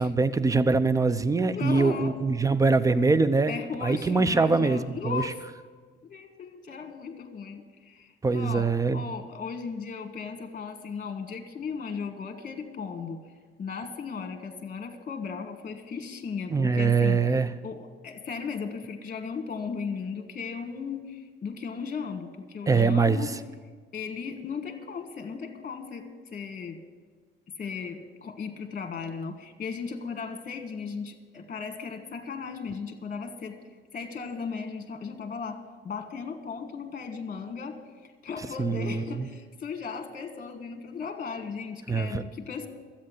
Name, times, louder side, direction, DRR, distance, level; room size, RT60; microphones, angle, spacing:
voice 1, 0.0-5.3 8.2-9.0 16.5-17.5 22.7-23.2 38.6-39.3 41.9-42.2, right 4 dB, 15° right, 14 dB, 0.6 m, -23 dB
voice 2, 1.5-2.2 3.5-5.4 6.0-13.2 13.6-23.3 23.9-26.8 27.6-33.6 33.9-37.8 38.0-42.7, left 5 dB, 40° left, 6 dB, 1.7 m, -36 dB
13.0 x 8.7 x 7.8 m, 1.5 s
cardioid pair, 90°, 20 cm